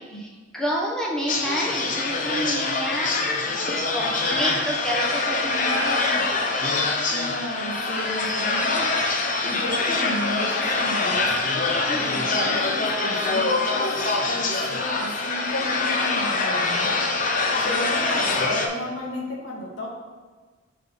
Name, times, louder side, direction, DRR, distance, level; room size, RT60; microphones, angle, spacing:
voice 1, 0.5-3.1 3.4-6.5 11.8-12.2 17.5-18.2, equal, 5° left, -3 dB, 1.2 m, -30 dB
sound 1, 1.3-18.7, left 3 dB, 45° left, 0.7 m, -24 dB
voice 2, 5.4-6.2 7.1-11.3 11.9-17.0 17.6-19.9, left 1 dB, 90° left, -2 dB, 1.5 m, -33 dB
5.2 x 4.1 x 5.3 m, 1.4 s
head